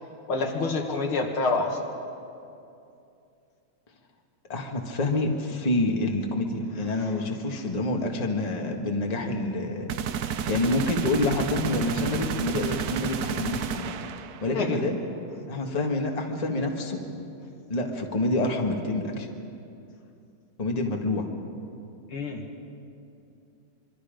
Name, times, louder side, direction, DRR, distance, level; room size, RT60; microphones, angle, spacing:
voice 1, 0.3-1.8 14.5-14.8 22.1-22.4, left 3 dB, 80° left, 2 dB, 2.7 m, -27 dB
voice 2, 4.5-9.9 10.5-13.9 14.4-15.0 15.5-17.0 17.7-19.3 20.6-21.3, left 2 dB, 20° left, 1 dB, 1.6 m, -27 dB
sound 1, 9.9-14.6, right 8 dB, 65° right, 1.0 m, -31 dB
25.5 x 24.0 x 5.2 m, 2.6 s
omnidirectional pair, 2.3 m